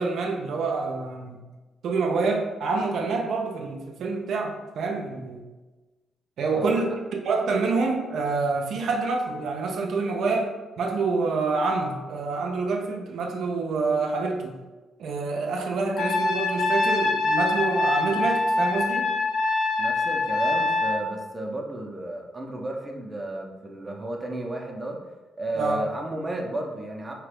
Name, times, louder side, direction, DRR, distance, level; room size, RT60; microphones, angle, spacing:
voice 1, 0.0-1.4 1.8-5.4 6.4-14.5 15.0-19.1 25.6-25.8, right 4 dB, 75° right, 1 dB, 0.4 m, -27 dB
voice 2, 6.6-7.0 19.8-25.0 25.4-27.1, right 1 dB, 20° right, 0 dB, 0.5 m, -33 dB
Trumpet, 16.0-21.0, left 3 dB, 70° left, 0.5 m, -24 dB
2.9 x 2.3 x 3.4 m, 1.2 s
cardioid pair, 95°, 0 cm